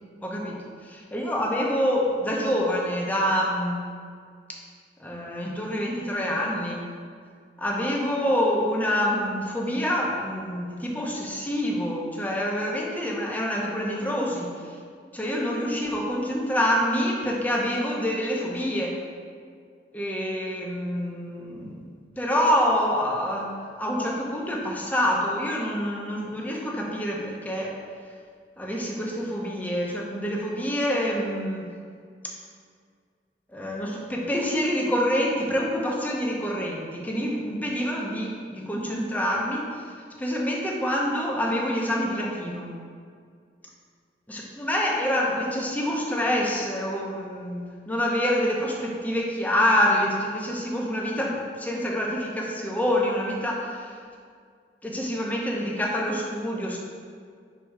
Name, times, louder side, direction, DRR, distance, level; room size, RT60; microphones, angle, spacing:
voice 1, 0.2-0.6 0.9-3.8 5.0-6.9 7.6-14.5 15.1-19.0 19.9-21.8 22.2-27.8 28.6-31.7 33.5-39.7 40.2-42.7 44.3-53.9 54.8-56.8, equal, 10° left, -3 dB, 0.9 m, -26 dB
6.3 x 3.8 x 4.6 m, 2.1 s
head